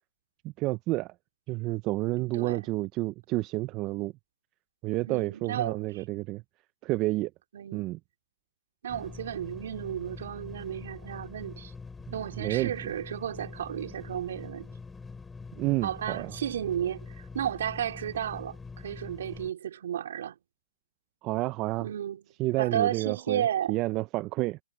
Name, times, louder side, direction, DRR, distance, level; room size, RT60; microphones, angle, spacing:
voice 1, 0.6-1.1 1.5-4.1 4.8-6.4 6.8-7.3 7.7-8.0 12.4-12.7 15.6-16.3 21.2-21.9 22.4-24.6, right 19 dB, 25° right, 0.5 m, -30 dB
voice 2, 2.3-2.7 5.0-6.0 7.5-7.9 8.8-11.7 12.1-14.7 15.8-20.4 21.8-22.3 22.6-23.8, right 10 dB, 60° right, 4.1 m, -33 dB
sound 1, 8.9-19.5, left 4 dB, 10° left, 7.1 m, -44 dB
hypercardioid pair, 150°, 0 cm